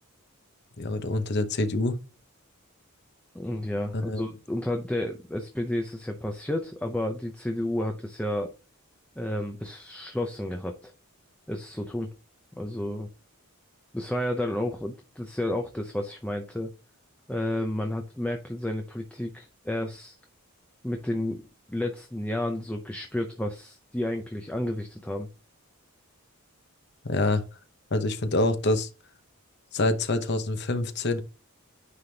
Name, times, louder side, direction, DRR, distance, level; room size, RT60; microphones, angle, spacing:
voice 1, 0.8-2.0 3.9-4.2 27.0-27.4 27.9-28.9 29.7-31.2, left 2 dB, 50° left, 0.9 m, -26 dB
voice 2, 3.3-8.5 9.2-10.9 11.5-12.1 12.6-13.1 13.9-16.7 17.3-20.2 20.8-21.4 21.7-25.3, left 1 dB, 5° left, 0.6 m, -31 dB
9.6 x 3.5 x 2.8 m
head